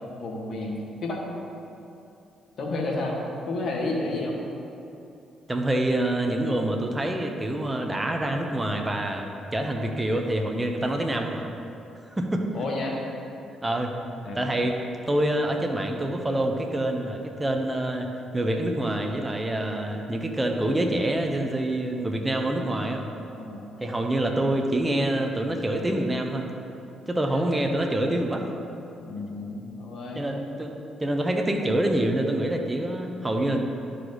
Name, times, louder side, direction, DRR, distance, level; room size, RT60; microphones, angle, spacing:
voice 1, 0.1-1.2 2.6-3.2 3.5-4.3 12.5-13.0 14.2-14.5 23.2-23.7 27.2-27.4 29.0-30.3, left 2 dB, 60° left, -1 dB, 1.6 m, -31 dB
voice 2, 5.5-11.5 12.1-12.5 13.6-14.0 14.3-14.7 15.1-23.1 23.8-26.5 27.1-28.4 30.1-30.7 31.0-33.6, right 1 dB, 15° right, 2 dB, 0.8 m, -26 dB
11.5 x 5.0 x 4.0 m, 2.7 s
cardioid pair, 90°, 0 cm